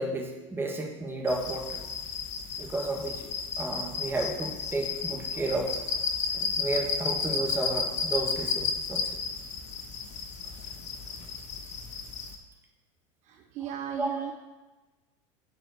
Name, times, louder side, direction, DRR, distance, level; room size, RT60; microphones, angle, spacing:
voice 1, 0.0-1.8 2.6-3.3 3.6-5.7 6.3-9.1 13.6-14.3, right 2 dB, 15° right, 0 dB, 1.7 m, -32 dB
sound 1, 1.3-12.3, left 5 dB, 45° left, 1.1 m, -33 dB
voice 2, 13.6-14.3, right 9 dB, 45° right, 5 dB, 0.6 m, -35 dB
7.9 x 4.2 x 6.6 m, 1.1 s
hypercardioid pair, 95°, 17 cm